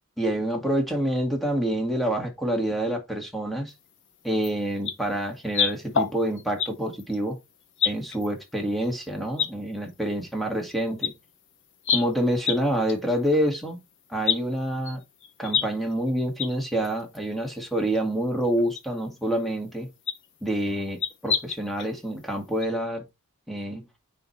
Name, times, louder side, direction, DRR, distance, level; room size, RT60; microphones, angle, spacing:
voice 1, 0.2-3.7 4.2-7.4 7.8-11.1 11.9-13.8 14.1-15.0 15.4-19.9 20.4-23.0 23.5-23.9, right 1 dB, ahead, 2.0 m, -27 dB
sound 1, 4.4-4.5 4.8-4.9 5.5-6.7 7.0-7.2 7.8-8.3 8.8-8.9 9.4-9.5 10.7-10.8 11.0-11.1 11.8-12.0 12.4-12.6 12.9-13.0 13.3-13.4 14.3-14.4 14.9-15.6 15.9-16.0 16.4-16.5 16.9-17.0 18.0-18.1 18.8-18.9 20.1-20.3 21.0-21.9 22.2-22.3 22.6-22.7, left 7 dB, 55° left, 1.2 m, -26 dB
9.4 x 4.4 x 3.3 m
head